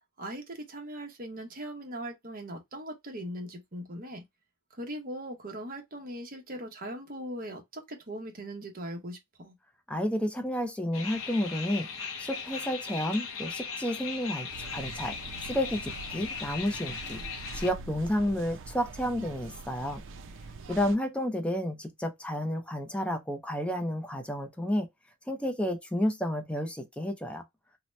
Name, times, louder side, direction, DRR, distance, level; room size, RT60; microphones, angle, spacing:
voice 1, 0.2-4.2 4.7-9.5, right 1 dB, 40° right, 0.8 m, -40 dB
voice 2, 9.9-15.2 15.4-17.2 17.5-20.0 20.7-24.9 25.3-27.4, left 1 dB, 5° left, 0.5 m, -31 dB
sound 1, 10.9-17.7, left 6 dB, 60° left, 0.5 m, -38 dB
sound 2, 14.5-21.0, right 3 dB, 60° right, 0.5 m, -44 dB
2.8 x 2.1 x 3.1 m
head